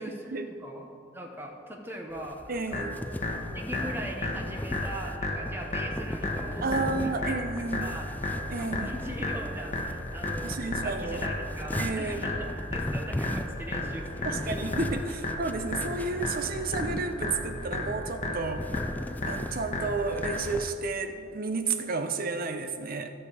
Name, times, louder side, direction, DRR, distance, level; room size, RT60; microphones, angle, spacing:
voice 1, 0.0-2.9 3.6-7.3 7.8-8.1 8.6-14.8, equal, 10° right, 1 dB, 1.1 m, -40 dB
sound 1, 2.1-20.7, left 1 dB, 10° left, 0.3 m, -39 dB
voice 2, 2.5-3.0 6.6-8.0 8.5-8.9 10.4-11.3 11.8-12.2 14.2-18.7 19.3-23.1, right 3 dB, 50° right, 7 dB, 0.7 m, -31 dB
sound 2, 2.7-20.7, left 2 dB, 40° left, 1.3 m, -33 dB
13.0 x 6.5 x 5.0 m, 2.5 s
head